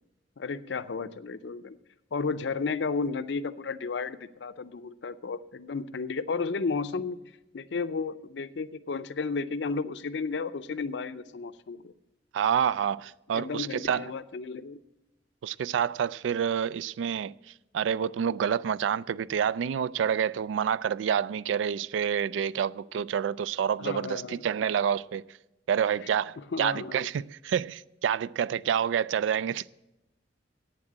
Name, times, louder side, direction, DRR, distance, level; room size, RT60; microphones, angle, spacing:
voice 1, 0.4-1.8 2.1-7.2 7.5-11.9 13.3-14.8 23.8-24.4 26.5-27.1, left 4 dB, 65° left, 0.5 m, -33 dB
voice 2, 12.3-14.1 15.4-17.3 17.7-25.2 25.7-29.6, right 8 dB, 80° right, 0.3 m, -28 dB
8.9 x 7.3 x 8.6 m
head